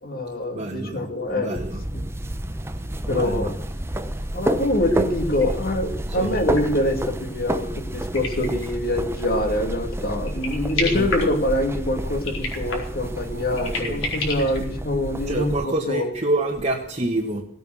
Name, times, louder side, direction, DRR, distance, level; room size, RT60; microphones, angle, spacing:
voice 1, 0.0-1.6 1.9-2.0 3.1-3.6 4.3-16.1, left 1 dB, 45° left, 6 dB, 2.2 m, -25 dB
voice 2, 0.5-1.1 1.3-1.8 2.7-2.8 3.1-3.5 6.1-6.3 10.8-11.1 13.8-14.0 15.3-17.4, right 1 dB, 30° right, 0 dB, 1.6 m, -27 dB
sound 1, 1.6-15.6, right 1 dB, 10° right, 0.9 m, -30 dB
sound 2, 3.8-4.2 4.6-9.1 9.6-9.9 10.2-11.8 12.1-14.6, left 3 dB, 75° left, 4.7 m, -32 dB
18.0 x 9.0 x 6.3 m, 0.69 s
head